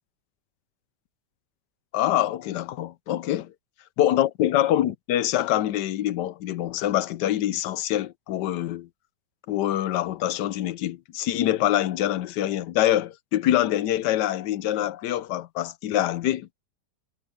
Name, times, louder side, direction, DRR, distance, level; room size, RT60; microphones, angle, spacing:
voice 1, 1.9-3.5 4.0-8.9 9.5-16.5, left 12 dB, 80° left, 1.3 m, -25 dB
omnidirectional pair, 1.8 m